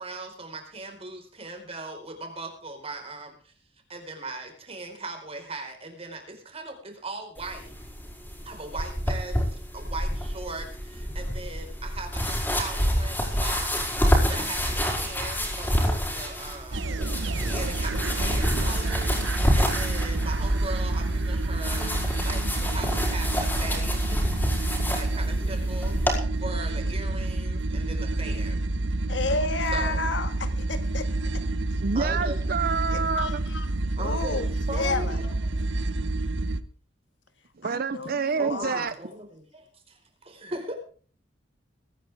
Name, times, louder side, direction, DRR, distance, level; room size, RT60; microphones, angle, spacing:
voice 1, 0.0-3.5 3.9-7.7 8.4-13.7 14.0-24.2 24.9-28.6 29.7-30.2 31.9-32.4 34.0-35.6 38.4-40.7, right 2 dB, 30° right, 4 dB, 4.5 m, -39 dB
sound 1, 7.4-26.2, equal, 10° left, 4.9 m, -28 dB
sound 2, 16.7-36.6, right 2 dB, 75° right, 1.0 m, -28 dB
voice 2, 29.1-31.1 33.2-33.7 34.0-35.2 37.6-38.9, left 3 dB, 70° left, 9 dB, 1.8 m, -31 dB
voice 3, 31.8-33.4 37.6-38.9, right 5 dB, 55° right, 13 dB, 0.7 m, -28 dB
23.0 x 10.0 x 3.5 m, 0.43 s
head